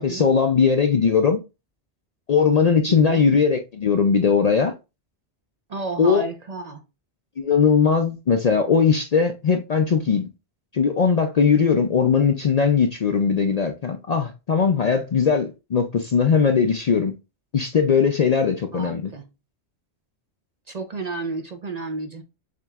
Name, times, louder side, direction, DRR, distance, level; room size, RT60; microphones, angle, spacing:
voice 1, 0.0-1.4 2.3-4.7 6.0-6.3 7.4-10.2 10.7-17.1 17.5-19.1, left 6 dB, 50° left, 0.5 m, -19 dB
voice 2, 2.9-3.2 5.7-6.8 18.7-19.3 20.7-22.2, right 3 dB, 45° right, 0.6 m, -32 dB
7.3 x 2.9 x 2.3 m
omnidirectional pair, 1.1 m